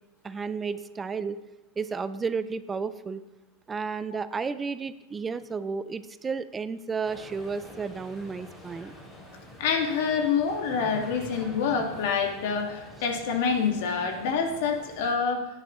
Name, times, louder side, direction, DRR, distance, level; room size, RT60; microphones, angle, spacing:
voice 1, 0.2-1.4 1.8-3.2 3.7-8.9, right 5 dB, 15° right, 14 dB, 0.3 m, -32 dB
sound 1, 7.0-15.1, left 1 dB, 10° left, 2.8 m, -46 dB
voice 2, 9.6-15.5, left 6 dB, 65° left, 3 dB, 1.8 m, -27 dB
15.0 x 9.9 x 3.1 m, 1.0 s
supercardioid pair, 160°, 0 cm